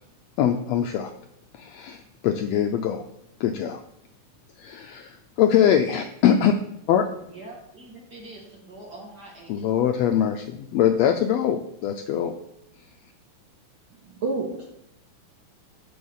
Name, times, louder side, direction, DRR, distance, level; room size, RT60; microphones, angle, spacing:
voice 1, 0.4-1.1 1.5-3.0 3.4-3.8 4.6-6.5 6.9-7.1 9.5-12.3, left 9 dB, 80° left, 6 dB, 1.5 m, -23 dB
voice 2, 7.3-9.7, right 2 dB, 35° right, -3 dB, 2.5 m, -44 dB
voice 3, 14.0-14.7, right 3 dB, 55° right, -2 dB, 1.5 m, -29 dB
10.0 x 3.6 x 7.2 m, 0.79 s
omnidirectional pair, 3.4 m